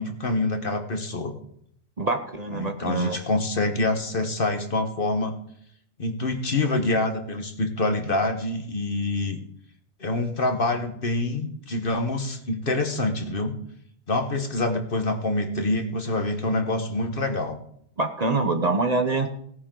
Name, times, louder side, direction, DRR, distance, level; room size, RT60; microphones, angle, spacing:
voice 1, 0.0-1.3 2.5-5.4 6.0-9.4 10.0-13.5 14.1-17.6, left 2 dB, 50° left, 6 dB, 1.5 m, -26 dB
voice 2, 2.0-3.2 18.0-19.3, right 3 dB, 40° right, 6 dB, 1.0 m, -25 dB
17.5 x 9.7 x 3.8 m, 0.69 s
omnidirectional pair, 1.2 m